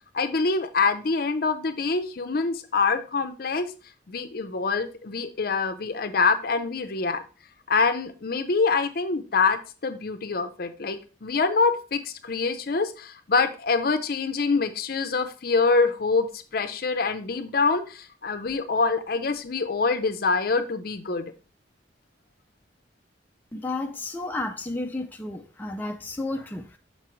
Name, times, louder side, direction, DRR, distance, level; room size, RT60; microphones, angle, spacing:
voice 1, 0.1-3.7 4.1-7.2 7.7-21.3, left 4 dB, 55° left, 0.6 m, -25 dB
voice 2, 23.5-26.8, left 2 dB, 10° left, 0.4 m, -32 dB
6.6 x 4.8 x 3.0 m
head